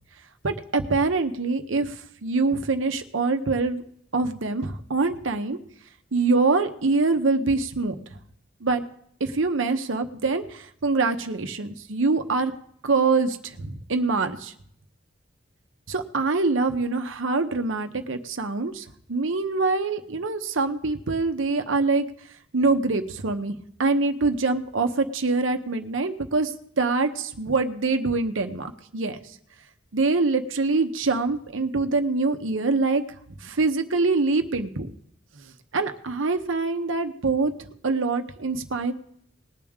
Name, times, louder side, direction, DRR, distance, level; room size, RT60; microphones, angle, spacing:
voice 1, 0.4-3.8 4.1-5.6 6.1-8.2 8.6-8.9 9.2-12.5 12.8-14.5 15.9-22.0 22.5-23.5 23.8-29.2 29.9-34.9 35.3-37.5 37.8-38.9, right 3 dB, 85° right, 7 dB, 0.9 m, -24 dB
20.0 x 8.7 x 3.6 m, 0.68 s
head